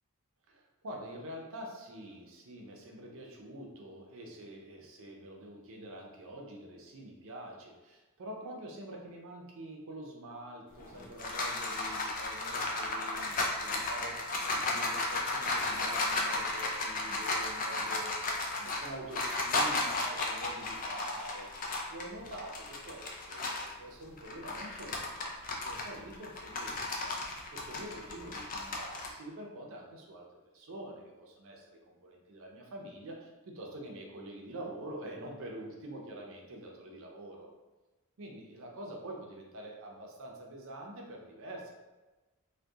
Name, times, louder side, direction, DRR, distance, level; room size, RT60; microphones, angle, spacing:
voice 1, 0.5-14.2 14.5-18.1 18.6-21.5 21.9-27.2 27.5-30.2 30.5-37.5 38.2-41.7, right 1 dB, 65° right, 0 dB, 0.5 m, -46 dB
sound 1, 10.8-23.7 24.2-29.1, left 2 dB, 40° left, 0.4 m, -34 dB
2.3 x 2.2 x 2.7 m, 1.2 s
head